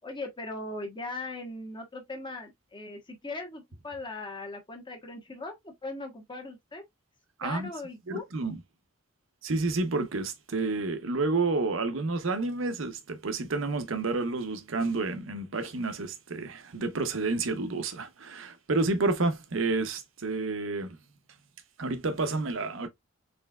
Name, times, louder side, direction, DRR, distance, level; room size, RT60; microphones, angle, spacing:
voice 1, 0.0-6.8 7.4-8.2, left 2 dB, 25° left, 1.1 m, -39 dB
voice 2, 8.1-8.6 9.4-21.0 21.8-22.9, right 3 dB, 70° right, 0.8 m, -30 dB
4.3 x 3.3 x 2.3 m
head